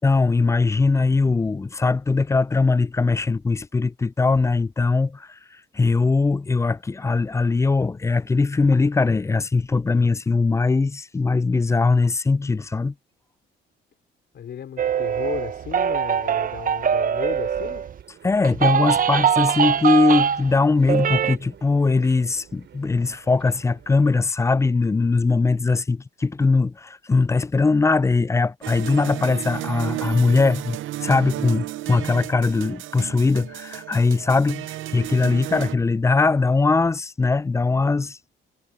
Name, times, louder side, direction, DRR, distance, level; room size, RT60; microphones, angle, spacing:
voice 1, 0.0-12.9 18.2-38.2, left 3 dB, 15° left, 0.3 m, -21 dB
voice 2, 14.3-17.9, left 9 dB, 60° left, 4.2 m, -34 dB
sound 1, 14.8-18.0 18.4-20.6 20.8-21.4, right 8 dB, 45° right, 0.7 m, -22 dB
sound 2, 17.8-24.0, right 9 dB, 65° right, 5.7 m, -48 dB
sound 3, 28.6-35.8, right 15 dB, 85° right, 0.8 m, -33 dB
cardioid pair, 90°, 20 cm